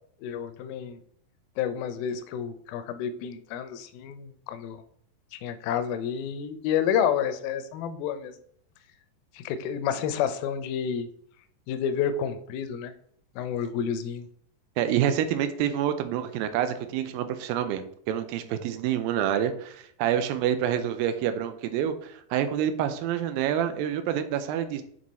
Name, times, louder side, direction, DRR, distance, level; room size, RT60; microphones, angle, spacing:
voice 1, 0.2-1.0 1.6-4.8 5.4-8.3 9.4-11.1 11.7-12.9 13.4-14.3, left 8 dB, 80° left, 11 dB, 2.4 m, -29 dB
voice 2, 14.8-24.8, right 10 dB, 85° right, 9 dB, 2.4 m, -27 dB
8.4 x 3.2 x 4.1 m, 0.63 s
omnidirectional pair, 4.2 m